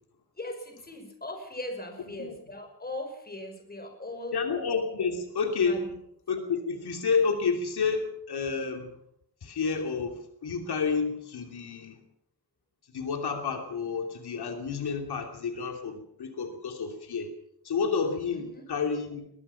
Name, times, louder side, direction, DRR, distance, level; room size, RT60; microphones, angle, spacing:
voice 1, 0.4-4.4 5.6-6.0 18.3-18.7, left 1 dB, 25° left, 5 dB, 5.5 m, -39 dB
voice 2, 4.3-5.8 6.3-8.9 9.4-12.0 12.9-17.3 17.6-19.4, left 5 dB, 85° left, 4 dB, 3.0 m, -30 dB
21.5 x 21.0 x 5.8 m, 0.73 s
wide cardioid pair, 150°, 38 cm